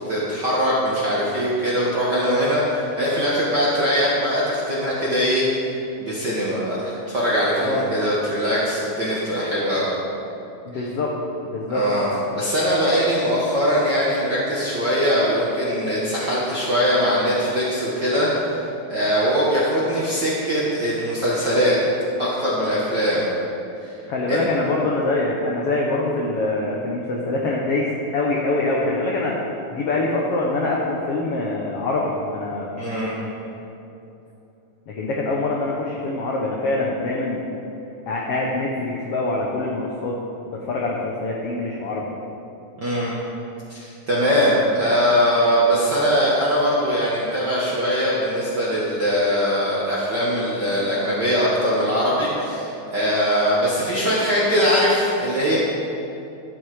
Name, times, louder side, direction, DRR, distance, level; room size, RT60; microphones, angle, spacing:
voice 1, 0.1-5.7 6.0-9.9 10.7-10.9 11.7-12.1 12.3-18.6 18.9-21.8 22.2-23.2 23.8-23.9 24.3-24.5 32.7-33.2 42.8-43.1 43.7-55.6, equal, 55° right, -7 dB, 1.2 m, -21 dB
voice 2, 7.6-7.9 10.6-11.1 11.4-11.8 24.1-29.4 29.7-32.7 34.9-37.4 38.1-40.1 40.4-42.0, left 2 dB, 85° left, -2 dB, 1.3 m, -24 dB
12.0 x 8.4 x 4.8 m, 2.8 s
omnidirectional pair, 4.2 m